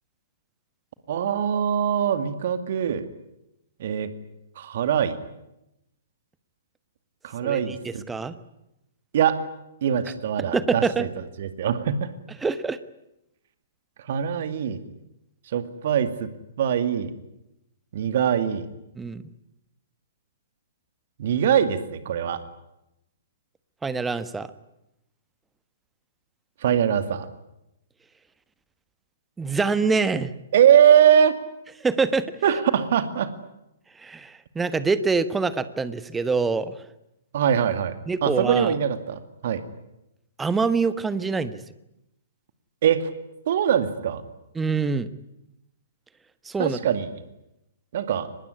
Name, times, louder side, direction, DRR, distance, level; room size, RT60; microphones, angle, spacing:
voice 1, 1.1-3.0 3.8-4.1 4.6-5.2 7.2-8.0 9.1-9.4 9.8-11.1 11.4-12.1 14.1-14.8 15.5-16.3 16.6-17.1 17.9-18.6 21.2-22.4 26.6-27.3 30.5-31.4 32.4-33.3 37.3-38.0 38.2-39.6 42.8-43.1 43.5-44.2 46.6-47.1 47.9-48.3, right 9 dB, 45° right, 11 dB, 2.2 m, -22 dB
voice 2, 7.4-8.3 10.5-11.0 12.4-12.8 19.0-19.2 23.8-24.5 29.4-30.3 31.8-32.2 34.0-36.8 38.1-38.7 40.4-41.6 44.5-45.1 46.4-46.8, right 4 dB, 10° right, 14 dB, 1.3 m, -25 dB
24.0 x 20.5 x 9.8 m, 0.87 s
figure-of-eight pair, 120°, 0 cm